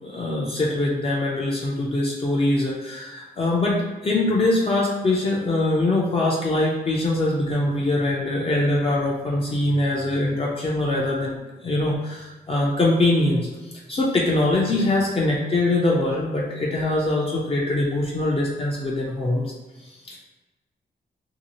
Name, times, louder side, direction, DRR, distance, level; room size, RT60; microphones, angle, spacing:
voice 1, 0.0-11.4 11.6-13.5 13.9-19.5 20.1-20.2, left 2 dB, 30° left, -4 dB, 0.4 m, -23 dB
3.0 x 2.7 x 2.9 m, 1.2 s
wide cardioid pair, 160°, 18 cm